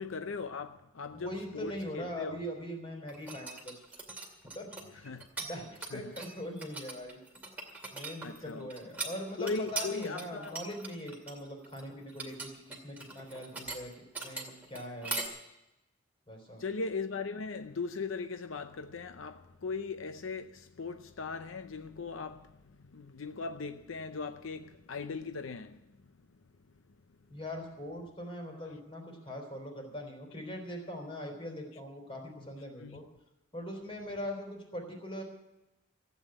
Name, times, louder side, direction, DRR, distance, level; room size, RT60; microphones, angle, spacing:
voice 1, 0.0-2.4 4.9-5.3 5.9-6.1 8.2-8.7 9.4-10.6 16.6-25.8 32.8-33.0, left 4 dB, 80° left, 0.6 m, -39 dB
voice 2, 1.1-3.8 4.6-5.1 5.4-7.2 7.9-13.9 14.2-15.3 16.3-16.6 27.3-33.0 33.5-35.2, equal, 25° left, 3.6 m, -41 dB
sound 1, 3.1-5.5 5.7-15.3, right 3 dB, 10° right, 2.3 m, -40 dB
15.0 x 8.5 x 8.8 m
head